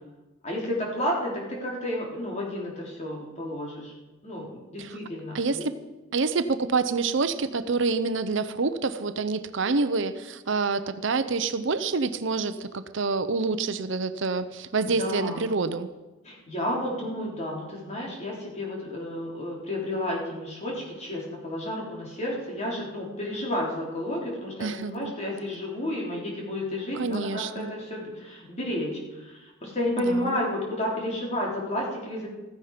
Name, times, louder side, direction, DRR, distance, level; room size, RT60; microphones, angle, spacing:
voice 1, 0.4-3.9 4.2-5.7 14.8-15.5 16.2-32.3, left 1 dB, 35° left, -3 dB, 4.1 m, -31 dB
voice 2, 5.3-5.7 6.1-15.9 24.6-25.1 27.0-27.7 29.9-30.4, right 4 dB, 65° right, 11 dB, 0.8 m, -27 dB
15.5 x 15.0 x 5.1 m, 1.1 s
head